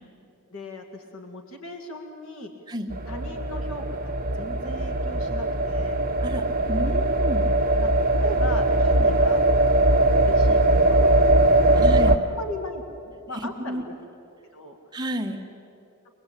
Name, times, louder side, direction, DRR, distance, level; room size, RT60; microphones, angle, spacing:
voice 1, 0.5-2.5 3.1-6.0 7.8-7.9 8.2-9.4 10.0-13.9 14.5-14.8, left 1 dB, 65° left, 3 dB, 2.0 m, -38 dB
sound 1, 2.9-12.2, right 2 dB, 40° right, 1.6 m, -20 dB
voice 2, 6.2-7.6 11.7-12.2 13.3-13.8 14.9-15.4, equal, 20° right, 1 dB, 1.7 m, -31 dB
25.5 x 20.0 x 8.6 m, 2.8 s
head